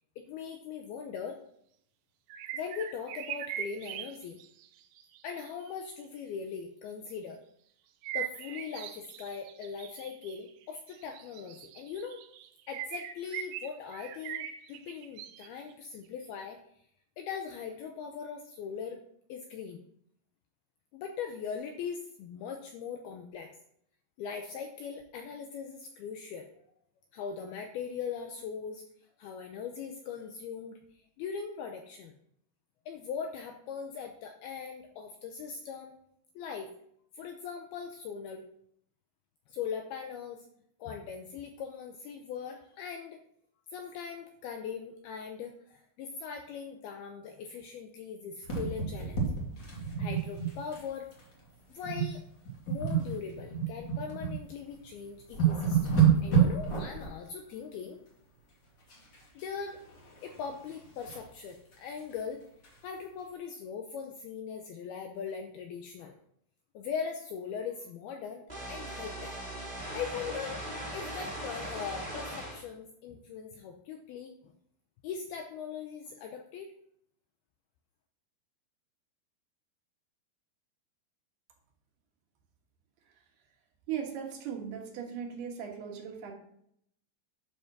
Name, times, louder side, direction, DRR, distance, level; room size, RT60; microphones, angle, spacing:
voice 1, 0.3-1.4 2.5-4.4 5.2-7.4 8.1-12.2 12.7-16.6 17.2-19.0 19.3-19.8 20.9-23.5 24.2-26.5 27.1-32.1 32.9-35.9 36.4-36.7 37.2-38.5 39.5-40.5 40.8-43.2 43.7-49.2 50.0-51.1 51.7-52.2 52.7-56.0 56.2-58.0 59.4-59.8 60.2-62.4 62.8-66.2 66.7-69.4 69.9-70.6 70.9-74.5 75.0-76.7, left 6 dB, 80° left, 4 dB, 2.3 m, -40 dB
sound 1, 2.3-5.7 8.0-15.7 16.2-16.3, right 10 dB, 80° right, 3.1 m, -41 dB
sound 2, 48.4-50.9 51.1-51.3 51.8-52.2 52.5-54.4 54.8-54.9 55.2-57.1 58.9-59.4 59.8-61.3 61.7-61.8 62.1-62.2 62.6-62.7, right 7 dB, 35° left, 1.9 m, -29 dB
sound 3, 68.5-72.6, right 1 dB, 15° right, 2.0 m, -39 dB
voice 2, 83.9-86.3, right 8 dB, 65° right, 2 dB, 3.1 m, -38 dB
12.0 x 6.0 x 6.0 m, 0.70 s
omnidirectional pair, 5.3 m